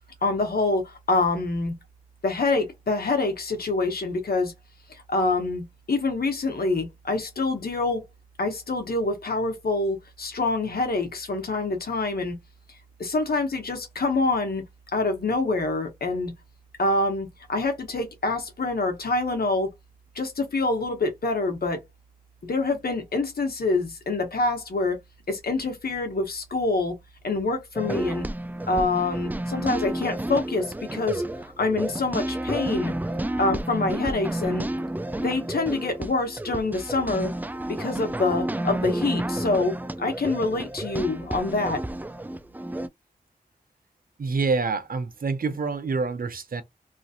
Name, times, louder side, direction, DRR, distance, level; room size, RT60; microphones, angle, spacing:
voice 1, 0.2-1.7 2.2-4.5 4.9-8.0 8.4-12.3 13.0-14.6 14.9-16.3 16.8-19.7 20.1-21.8 22.4-25.0 25.3-26.9 27.2-28.3 28.7-31.2 31.6-32.9 33.4-34.6 35.2-37.3 37.7-41.8, left 3 dB, 80° left, 1.1 m, -26 dB
sound 1, 27.8-42.9, right 1 dB, 10° right, 0.4 m, -31 dB
voice 2, 44.2-46.6, right 4 dB, 70° right, 0.7 m, -27 dB
3.0 x 2.5 x 2.7 m
cardioid pair, 45°, 16 cm